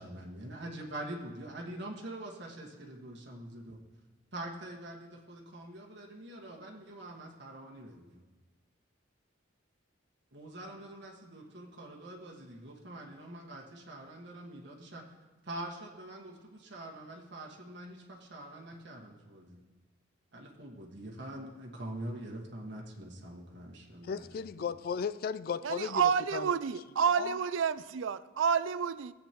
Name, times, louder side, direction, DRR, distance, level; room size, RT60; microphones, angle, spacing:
voice 1, 0.0-3.8 4.3-8.2 10.3-15.0 15.4-19.6 20.3-24.2 24.6-24.7, right 1 dB, 60° right, -2 dB, 1.7 m, -44 dB
voice 2, 24.0-26.5 27.2-27.4, left 6 dB, 50° left, 15 dB, 0.3 m, -35 dB
voice 3, 25.6-29.1, right 7 dB, 85° right, 15 dB, 0.4 m, -29 dB
16.0 x 8.2 x 3.0 m, 1.2 s
head